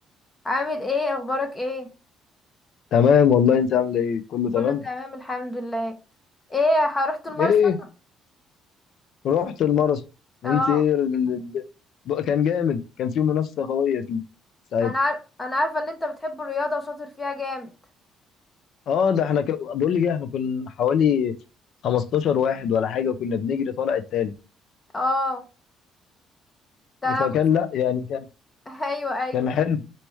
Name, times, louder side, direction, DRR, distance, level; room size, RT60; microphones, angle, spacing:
voice 1, 0.4-1.9 4.6-5.9 6.5-7.5 10.4-10.8 14.8-17.7 24.9-25.4 27.0-27.3 28.7-29.5, left 2 dB, 15° left, 0.6 m, -26 dB
voice 2, 2.9-4.8 7.4-7.7 9.2-10.0 10.4-11.6 12.1-14.2 14.7-14.9 18.9-21.3 21.8-24.3 27.2-28.2 29.3-29.8, left 8 dB, 60° left, 0.5 m, -22 dB
4.2 x 3.4 x 3.0 m
cardioid pair, 140°, 0 cm